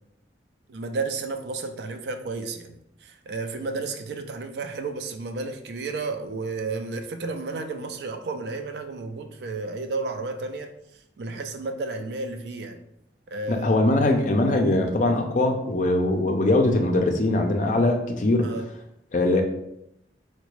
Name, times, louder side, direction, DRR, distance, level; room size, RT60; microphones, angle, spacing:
voice 1, 0.7-10.7 11.2-12.8 13.3-13.8 18.4-18.6, right 3 dB, 65° right, 7 dB, 0.4 m, -32 dB
voice 2, 13.5-18.6 19.1-19.4, left 2 dB, 45° left, 4 dB, 0.4 m, -21 dB
3.8 x 2.2 x 3.0 m, 0.80 s
head